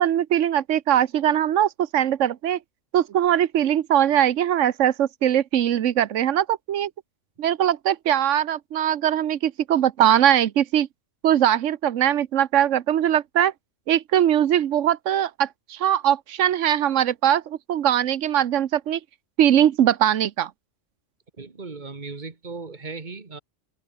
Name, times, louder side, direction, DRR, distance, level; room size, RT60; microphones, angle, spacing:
voice 1, 0.0-2.6 2.9-6.9 7.4-10.9 11.2-13.5 13.9-19.0 19.4-20.5, right 10 dB, 90° right, 1.2 m, -21 dB
voice 2, 21.4-23.4, right 4 dB, 40° right, 1.9 m, -37 dB
open air
omnidirectional pair, 1.2 m